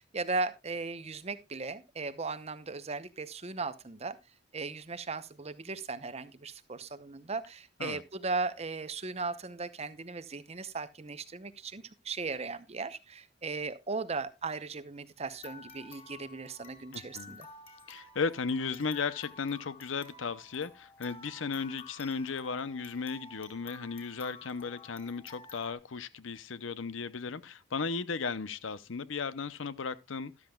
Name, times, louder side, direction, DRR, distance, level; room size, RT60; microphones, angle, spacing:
voice 1, 0.0-4.2 4.5-17.5, right 3 dB, 30° right, 0.8 m, -37 dB
sound 1, 15.2-25.7, left 4 dB, 30° left, 2.7 m, -52 dB
voice 2, 16.9-17.4 17.9-30.3, left 5 dB, 70° left, 0.7 m, -35 dB
13.0 x 12.0 x 2.3 m
head